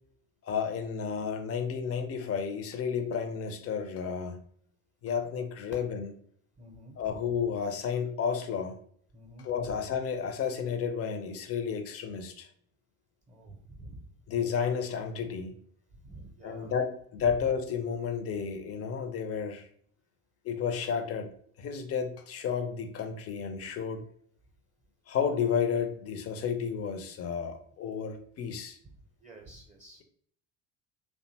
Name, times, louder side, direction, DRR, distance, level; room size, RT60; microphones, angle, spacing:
voice 1, 0.4-4.4 5.0-6.1 7.0-8.7 9.4-12.5 14.3-15.5 16.4-19.7 20.4-21.3 21.6-24.0 25.1-28.8, left 7 dB, 35° left, 6 dB, 0.5 m, -32 dB
voice 2, 6.6-7.0 9.1-9.5 13.3-14.0 16.0-16.7 28.8-30.0, right 1 dB, 20° right, 0 dB, 0.6 m, -50 dB
2.7 x 2.2 x 2.7 m, 0.62 s
hypercardioid pair, 60°, 41 cm